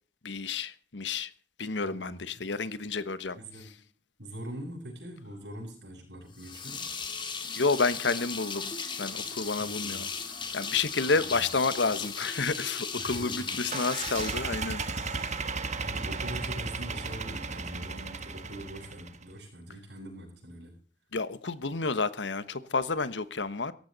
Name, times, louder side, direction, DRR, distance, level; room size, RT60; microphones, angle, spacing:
voice 1, 0.2-1.3 1.6-3.4 7.5-8.7 9.0-10.1 10.5-15.1 21.1-23.7, left 4 dB, 85° left, 1.2 m, -30 dB
voice 2, 1.8-2.3 3.3-3.7 4.2-6.9 9.6-10.2 11.1-11.4 13.0-13.6 15.8-20.7, equal, 75° right, 8.0 m, -43 dB
sound 1, 6.4-15.2, left 5 dB, 30° left, 2.5 m, -37 dB
sound 2, 13.7-19.2, right 4 dB, 40° right, 1.4 m, -35 dB
17.0 x 14.5 x 4.1 m
head